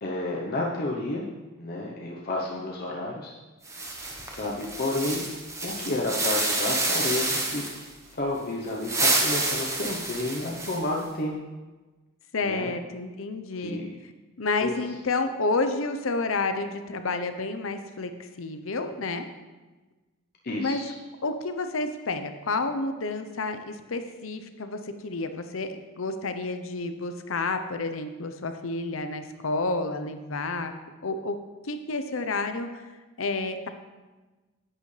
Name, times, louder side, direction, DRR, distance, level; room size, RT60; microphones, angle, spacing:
voice 1, 0.0-1.3 1.6-3.3 4.2-5.2 5.6-7.6 8.1-11.3 12.4-12.7 13.6-13.9 14.6-14.7 20.4-20.9, left 2 dB, 50° left, -2 dB, 0.9 m, -31 dB
sound 1, 3.6-7.9 8.7-11.0, right 2 dB, 15° right, 1.2 m, -28 dB
voice 2, 12.3-13.8 14.4-19.3 20.6-20.9 21.2-30.7 31.0-31.4 31.6-32.9 33.2-33.7, left 3 dB, 85° left, 8 dB, 0.8 m, -30 dB
10.5 x 8.9 x 3.3 m, 1.2 s
head